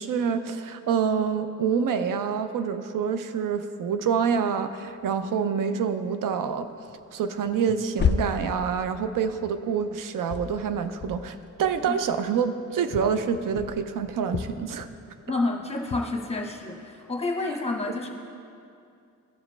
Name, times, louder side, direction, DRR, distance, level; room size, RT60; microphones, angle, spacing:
voice 1, 0.0-6.7 7.1-14.9, right 6 dB, 80° right, 9 dB, 0.5 m, -27 dB
sound 1, 6.9-7.0 7.3-9.9 10.2-12.3 12.9-15.3 15.9-16.2, left 6 dB, 35° left, 0.4 m, -32 dB
voice 2, 15.3-18.1, left 2 dB, 20° left, 1 dB, 1.0 m, -29 dB
14.5 x 5.0 x 3.2 m, 2.5 s
cardioid pair, 80°, 32 cm